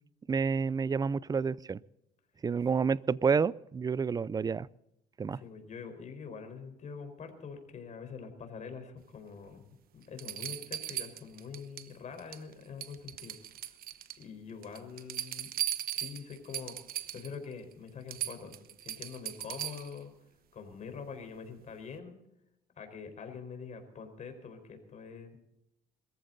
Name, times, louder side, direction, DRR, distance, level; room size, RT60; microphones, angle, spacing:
voice 1, 0.3-1.8 2.4-4.7 5.2-5.4, right 5 dB, 20° right, 22 dB, 0.5 m, -29 dB
voice 2, 5.3-9.7 9.9-13.3 14.2-15.5 15.9-20.1 20.5-22.2 22.8-25.4, left 5 dB, 45° left, 5 dB, 4.4 m, -45 dB
sound 1, 9.5-9.6 10.2-11.9 12.2-12.5 12.8-14.2 14.6-17.4 17.7-17.8 18.1-20.0 21.7-21.8, right 12 dB, 60° right, 1.0 m, -38 dB
21.5 x 14.5 x 4.0 m, 0.82 s
cardioid pair, 110°, 17 cm